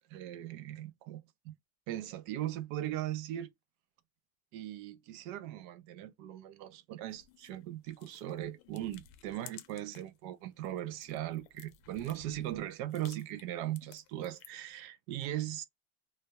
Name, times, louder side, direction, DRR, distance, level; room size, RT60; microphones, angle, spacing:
voice 1, 0.1-1.6 1.9-3.5 4.5-15.6, right 13 dB, 70° right, 0.5 m, -39 dB
sound 1, 7.1-10.2 10.5-14.7, left 11 dB, 75° left, 0.6 m, -56 dB
2.2 x 2.0 x 2.7 m
cardioid pair, 180°, 43 cm